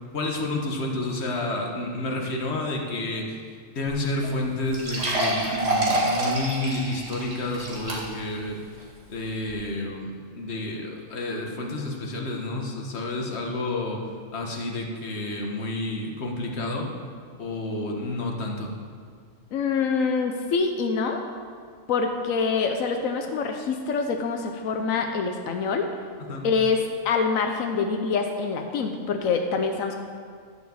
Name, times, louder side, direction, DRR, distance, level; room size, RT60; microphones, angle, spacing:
voice 1, 0.1-3.4 3.7-8.6 9.1-14.0 14.3-16.9 17.4-18.7 26.3-26.5, left 2 dB, 55° left, 1 dB, 1.6 m, -30 dB
sound 1, 3.9-4.0 4.2-4.3 4.7-8.3 8.8-8.9 9.5-9.6, right 1 dB, 55° right, 2.2 m, -27 dB
voice 2, 19.5-21.2 21.9-25.9 26.4-30.0, left 5 dB, 90° left, 4 dB, 1.2 m, -25 dB
11.5 x 6.0 x 7.1 m, 2.1 s
omnidirectional pair, 1.3 m